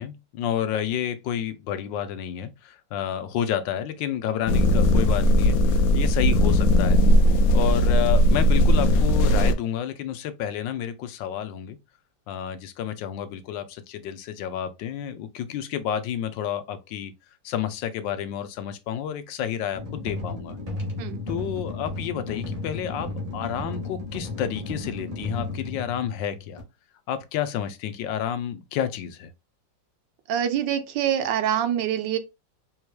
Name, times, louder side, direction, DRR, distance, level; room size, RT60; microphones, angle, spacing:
voice 1, 0.0-7.0 7.5-11.8 12.3-17.1 17.4-20.6 21.3-26.6 27.1-29.3, left 9 dB, 85° left, 1.3 m, -30 dB
sound 1, 4.5-9.5, equal, 70° left, 0.9 m, -18 dB
sound 2, 19.7-26.6, left 2 dB, 25° right, 1.2 m, -34 dB
voice 2, 30.3-32.2, right 10 dB, 80° right, 1.3 m, -25 dB
4.7 x 3.5 x 2.2 m
omnidirectional pair, 1.9 m